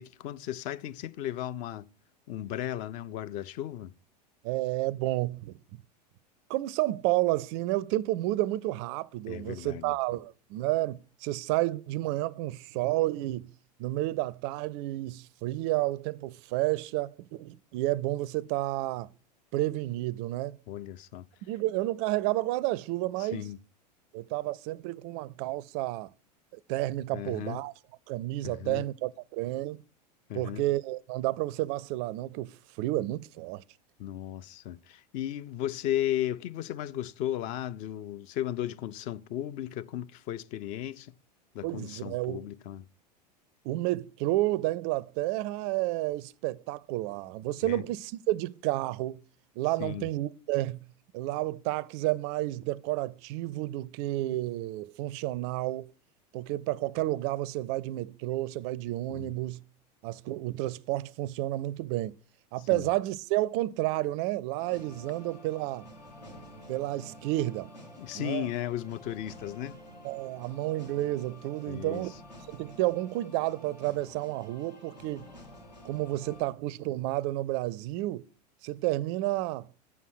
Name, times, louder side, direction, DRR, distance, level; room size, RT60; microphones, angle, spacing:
voice 1, 0.0-1.9 2.3-3.9 9.3-10.0 20.7-21.2 23.2-23.6 27.1-27.6 28.4-28.8 30.3-30.6 34.0-41.1 41.5-42.8 47.6-47.8 49.8-50.1 59.1-59.3 62.7-62.9 68.0-69.8 71.7-72.0, left 12 dB, 40° left, 0.5 m, -35 dB
voice 2, 4.4-5.5 6.5-13.5 13.8-19.1 19.5-20.6 21.4-23.5 24.1-26.1 26.7-27.7 28.1-29.8 30.3-33.6 41.6-42.5 43.6-49.2 49.6-50.8 51.1-55.9 56.3-59.6 60.0-62.1 62.5-65.9 66.7-67.7 68.1-68.5 70.0-72.1 72.5-75.3 75.8-78.3 78.6-79.7, right 17 dB, 40° right, 0.4 m, -31 dB
sound 1, 64.5-76.5, left 1 dB, 80° left, 2.7 m, -50 dB
7.3 x 5.5 x 6.2 m
figure-of-eight pair, 85°, 21 cm